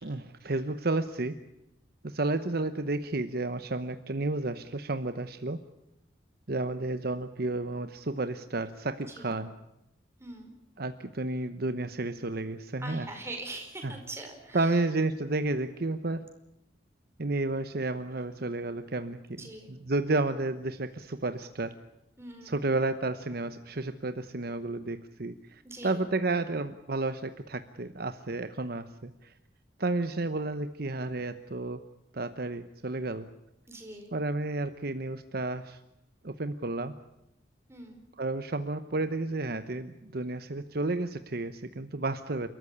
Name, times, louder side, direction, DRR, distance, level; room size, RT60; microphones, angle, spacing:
voice 1, 0.0-1.4 2.0-5.6 6.5-9.5 10.8-13.1 13.8-14.0 14.5-16.3 17.2-19.4 19.7-21.7 22.4-29.3 29.8-31.8 32.1-33.3 34.1-35.8 36.2-36.9 38.2-42.5, right 2 dB, 55° right, 10 dB, 1.0 m, -31 dB
voice 2, 10.2-10.5 12.8-14.8 19.4-19.7 22.2-22.7 25.6-26.0 33.7-34.1 37.7-38.1, right 2 dB, 15° right, 3 dB, 5.0 m, -43 dB
29.5 x 14.0 x 9.9 m, 0.86 s
head